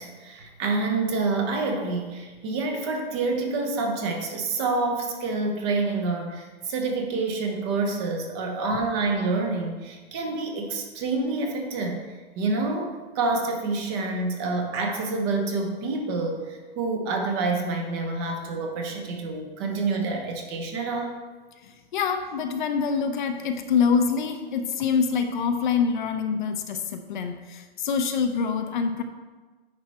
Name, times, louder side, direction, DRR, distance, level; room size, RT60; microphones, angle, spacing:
voice 1, 0.0-12.0 12.4-21.2, right 3 dB, 25° right, 2 dB, 0.9 m, -27 dB
voice 2, 21.6-29.0, left 6 dB, 50° left, 6 dB, 0.7 m, -25 dB
9.6 x 4.9 x 4.3 m, 1.3 s
hypercardioid pair, 170°, 31 cm